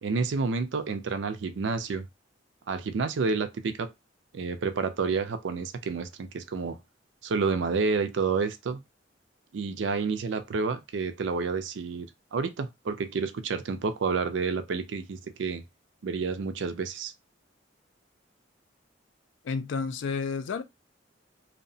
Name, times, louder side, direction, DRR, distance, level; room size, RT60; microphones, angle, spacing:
voice 1, 0.0-2.1 2.7-3.9 4.3-6.8 7.2-8.8 9.5-15.6 16.0-17.1, right 4 dB, 70° right, 0.4 m, -29 dB
voice 2, 19.4-20.6, left 5 dB, 70° left, 0.3 m, -31 dB
2.7 x 2.1 x 2.6 m
head